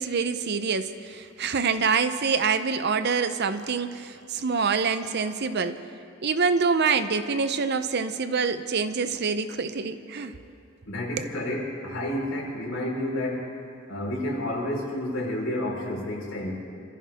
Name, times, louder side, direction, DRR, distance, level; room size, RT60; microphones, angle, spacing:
voice 1, 0.0-5.8 6.2-10.4 11.2-11.3, right 5 dB, 55° right, 11 dB, 0.7 m, -26 dB
voice 2, 10.9-13.5 13.9-16.5, left 1 dB, 75° left, -3 dB, 4.4 m, -30 dB
27.0 x 14.5 x 3.6 m, 2.5 s
head